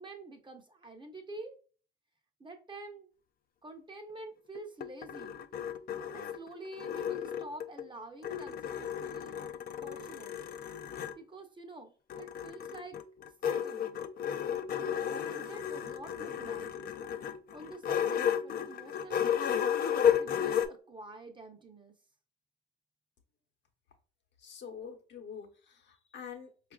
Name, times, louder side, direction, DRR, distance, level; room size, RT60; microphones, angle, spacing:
voice 1, 0.0-1.5 2.4-3.1 3.6-5.4 6.1-9.4 9.8-10.4 11.2-13.0 13.4-14.0 14.8-16.9 17.5-19.4 20.0-22.0, right 2 dB, 25° right, 4 dB, 0.7 m, -48 dB
sound 1, 4.5-7.9 8.2-11.2 12.1-20.7, left 8 dB, 50° left, 0.4 m, -33 dB
voice 2, 24.4-26.7, left 7 dB, 65° left, 3 dB, 0.9 m, -46 dB
4.6 x 2.4 x 2.3 m, 0.40 s
cardioid pair, 90°, 20 cm